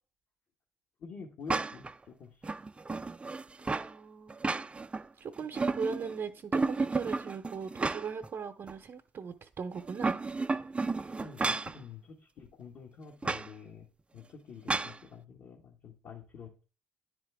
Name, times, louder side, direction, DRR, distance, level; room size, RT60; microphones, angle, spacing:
voice 1, 1.0-2.5 11.2-13.9 14.1-16.6, left 6 dB, 60° left, 1.5 m, -48 dB
sound 1, 1.5-1.9 2.4-3.9 4.3-5.0 5.4-6.1 6.5-8.3 8.7-8.8 9.8-11.8 13.2-13.5 14.7-15.0, right 3 dB, 20° right, 0.4 m, -32 dB
voice 2, 3.6-4.4 4.8-10.2, right 5 dB, 50° right, 0.7 m, -39 dB
9.8 x 4.2 x 3.5 m
hypercardioid pair, 60°, 6 cm